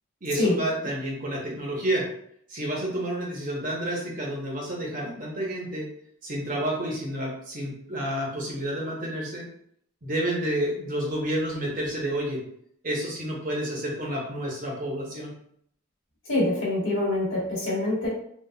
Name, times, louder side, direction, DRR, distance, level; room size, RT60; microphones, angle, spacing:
voice 1, 0.2-2.1 2.5-5.9 6.2-9.5 10.0-12.4 12.8-15.3, right 1 dB, 40° right, -2 dB, 0.7 m, -30 dB
voice 2, 16.3-18.1, left 2 dB, 70° left, -5 dB, 1.3 m, -25 dB
3.8 x 2.2 x 2.2 m, 0.68 s
head